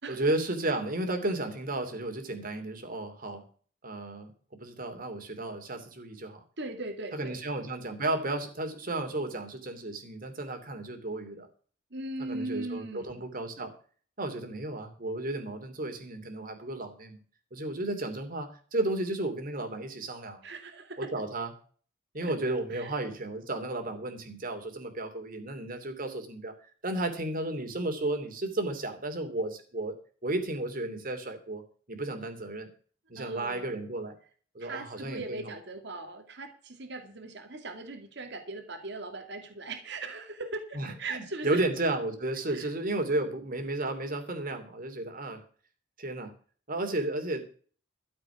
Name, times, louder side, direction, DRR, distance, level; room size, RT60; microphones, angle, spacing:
voice 1, 0.1-3.4 3.8-4.3 4.6-6.4 7.1-11.5 12.2-13.7 14.2-17.2 17.5-20.4 21.0-21.5 22.1-26.5 26.8-29.9 30.2-31.6 31.9-32.7 33.1-34.1 34.5-35.4 40.7-45.4 46.0-46.3 46.7-47.5, right 2 dB, 45° right, 6 dB, 2.9 m, -33 dB
voice 2, 6.6-7.4 11.9-13.2 20.4-21.1 22.2-22.9 33.2-33.8 34.6-41.6 42.5-42.7, right 2 dB, 65° right, 5 dB, 2.3 m, -39 dB
13.5 x 7.5 x 7.0 m, 0.43 s
head